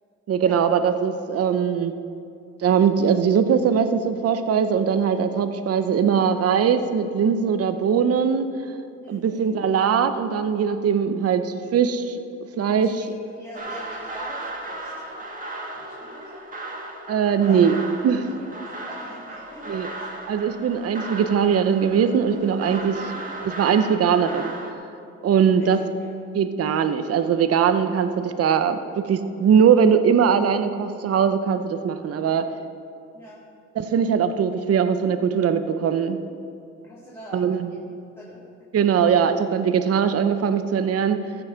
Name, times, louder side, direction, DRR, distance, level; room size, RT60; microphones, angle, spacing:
voice 1, 0.3-1.9 2.6-8.5 9.1-12.2 12.6-13.0 17.1-17.8 18.0-18.3 19.7-19.9 20.3-23.0 23.4-24.5 25.2-25.8 26.3-32.4 33.8-36.2 37.3-37.7 38.7-41.2, right 7 dB, 50° right, 9 dB, 0.8 m, -21 dB
voice 2, 9.0-9.6 12.8-14.9 15.7-16.4 17.4-17.6 18.2-20.1 23.0-23.4 25.5-26.1 32.1-32.4 33.1-33.4 36.8-37.8 38.1-38.4, left 1 dB, 10° left, -6 dB, 2.2 m, -44 dB
sound 1, 13.5-24.7, right 2 dB, 25° right, 1.8 m, -36 dB
15.0 x 7.0 x 5.6 m, 2.6 s
cardioid pair, 90°, 30 cm